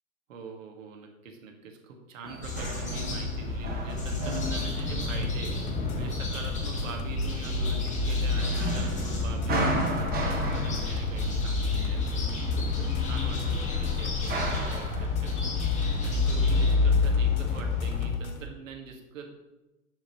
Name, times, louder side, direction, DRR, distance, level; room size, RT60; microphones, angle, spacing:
voice 1, 0.3-5.6 6.0-12.0 12.6-15.6 16.0-19.3, right 4 dB, 65° right, 2 dB, 1.8 m, -43 dB
sound 1, 2.2-15.1, right 2 dB, 20° right, 1.5 m, -36 dB
sound 2, 2.4-18.1, left 3 dB, 15° left, 1.7 m, -29 dB
sound 3, 4.3-18.5, left 2 dB, 80° left, 1.0 m, -39 dB
10.5 x 5.7 x 3.0 m, 1.0 s
figure-of-eight pair, 100°, 42 cm